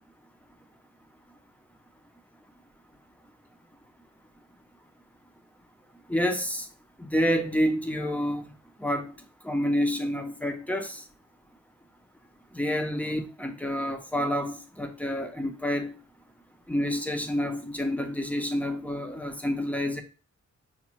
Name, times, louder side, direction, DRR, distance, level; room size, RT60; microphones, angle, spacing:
voice 1, 6.1-6.7 7.0-8.4 8.8-9.1 9.4-11.0 12.5-15.9 16.7-20.0, equal, 5° left, 0.4 m, -28 dB
5.1 x 2.1 x 2.9 m
wide cardioid pair, 140°, 30 cm